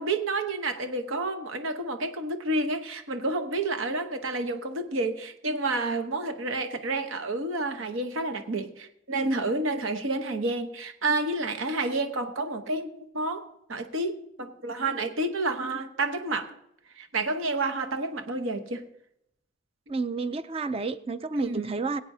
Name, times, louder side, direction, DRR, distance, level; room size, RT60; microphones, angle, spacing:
voice 1, 0.0-16.5 17.0-18.8 21.3-21.7, right 2 dB, 75° right, 6 dB, 1.1 m, -30 dB
voice 2, 19.9-22.0, right 4 dB, 30° right, 12 dB, 0.5 m, -30 dB
22.0 x 8.5 x 2.8 m, 0.77 s
head